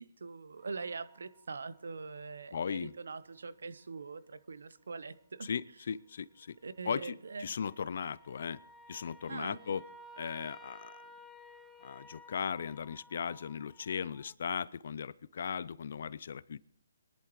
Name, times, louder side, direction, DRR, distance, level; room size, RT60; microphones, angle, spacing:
voice 1, 0.0-5.5 6.6-7.5 9.3-9.8, right 4 dB, 75° right, 0.9 m, -43 dB
sound 1, 0.6-2.0 2.4-2.6 2.9-3.2 6.4-14.3, left 1 dB, 10° left, 0.7 m, -56 dB
voice 2, 2.5-2.9 5.4-6.6 6.9-8.6 8.9-9.8 10.2-11.0 11.8-16.6, left 7 dB, 60° left, 0.5 m, -37 dB
24.0 x 11.0 x 3.2 m
hypercardioid pair, 150°, 0 cm